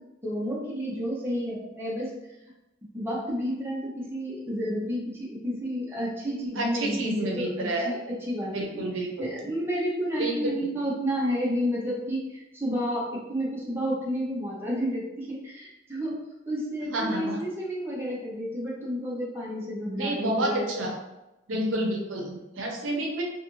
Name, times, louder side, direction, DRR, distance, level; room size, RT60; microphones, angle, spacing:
voice 1, 0.2-2.1 2.9-16.2 16.5-20.7, equal, 10° right, -6 dB, 0.6 m, -31 dB
voice 2, 6.6-7.9 8.5-9.3 10.2-10.3 16.9-17.4 20.0-21.0 21.5-23.2, right 1 dB, 80° right, 0 dB, 0.6 m, -29 dB
2.5 x 2.5 x 2.9 m, 0.96 s
head